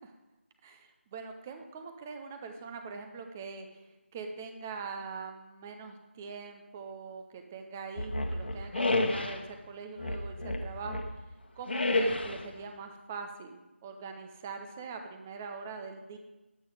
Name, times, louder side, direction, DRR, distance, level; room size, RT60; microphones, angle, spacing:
voice 1, 0.6-3.8 4.1-11.0 11.6-16.2, right 5 dB, 10° right, 6 dB, 0.5 m, -42 dB
sound 1, 8.0-9.4 10.0-11.1 11.7-12.5, left 2 dB, 50° left, 1.1 m, -30 dB
11.0 x 8.4 x 4.9 m, 1.0 s
figure-of-eight pair, 165°, 7 cm